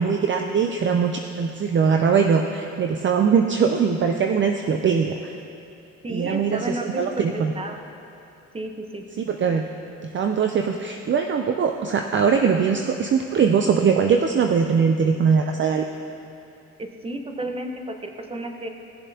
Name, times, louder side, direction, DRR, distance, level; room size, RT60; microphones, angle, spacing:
voice 1, 0.0-5.3 6.1-7.5 9.3-9.6 10.0-15.9, right 6 dB, 40° right, 4 dB, 0.5 m, -21 dB
voice 2, 6.0-7.8 8.5-9.0 16.8-18.7, right 1 dB, 20° right, 4 dB, 1.0 m, -32 dB
17.0 x 7.2 x 2.8 m, 2.7 s
cardioid pair, 90°, 30 cm